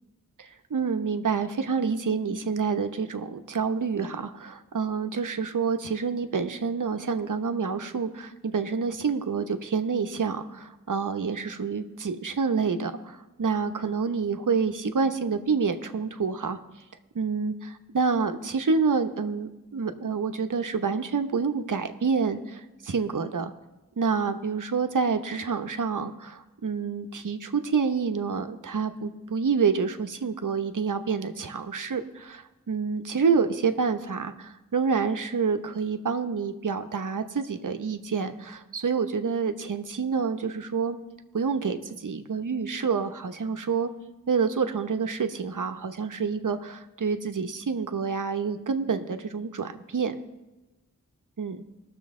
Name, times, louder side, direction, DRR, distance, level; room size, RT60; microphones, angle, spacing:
voice 1, 0.7-16.6 17.1-17.5 17.9-23.5 24.0-41.0 41.3-43.9 44.3-50.2 51.4-51.5, right 5 dB, 65° right, 7 dB, 0.9 m, -28 dB
20.0 x 6.8 x 3.7 m, 1.1 s
cardioid pair, 50°, 34 cm